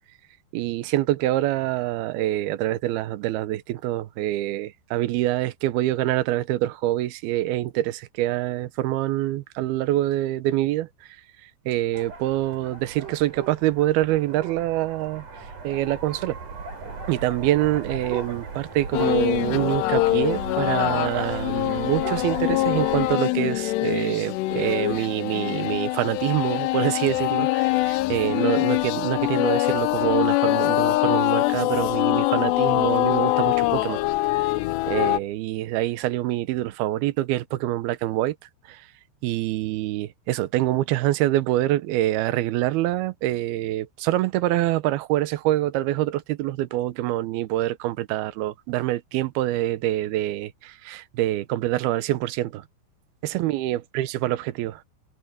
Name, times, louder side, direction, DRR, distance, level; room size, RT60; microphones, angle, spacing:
voice 1, 0.5-11.2 11.7-15.2 15.6-16.4 17.1-34.0 34.9-38.4 38.7-38.9 39.2-52.6 53.2-54.8, right 15 dB, 80° right, 2.2 m, -25 dB
sound 1, 11.9-23.1, right 3 dB, 40° right, 5.8 m, -37 dB
sound 2, 18.9-35.2, left 19 dB, 85° left, 2.4 m, -23 dB
omnidirectional pair, 5.6 m